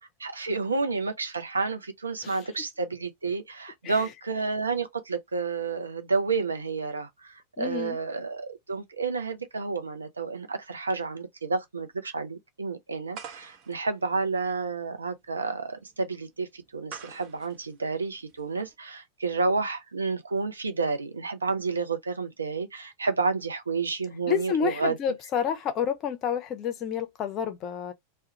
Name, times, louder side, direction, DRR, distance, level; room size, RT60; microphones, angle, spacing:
voice 1, 0.2-25.0, right 4 dB, 75° right, 0.5 m, -30 dB
voice 2, 7.6-8.0 24.3-27.9, left 8 dB, 35° left, 0.5 m, -29 dB
sound 1, 13.1-18.8, right 7 dB, 40° right, 0.7 m, -48 dB
2.3 x 2.1 x 2.9 m
figure-of-eight pair, 90°, 0 cm